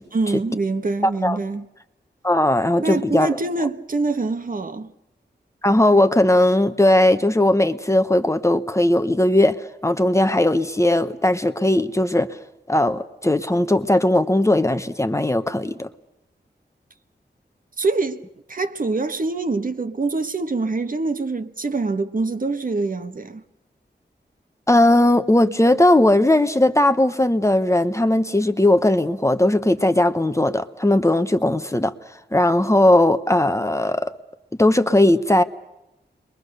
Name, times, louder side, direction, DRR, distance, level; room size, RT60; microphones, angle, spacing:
voice 1, 0.1-1.6 2.8-4.9 17.8-18.2 18.5-23.4, right 3 dB, 50° right, 1.4 m, -24 dB
voice 2, 2.2-3.4 5.6-12.3 12.7-15.9 24.7-31.9 32.3-34.1 34.6-35.4, left 1 dB, 15° left, 1.0 m, -18 dB
29.5 x 22.5 x 6.7 m
wide cardioid pair, 80°, 18 cm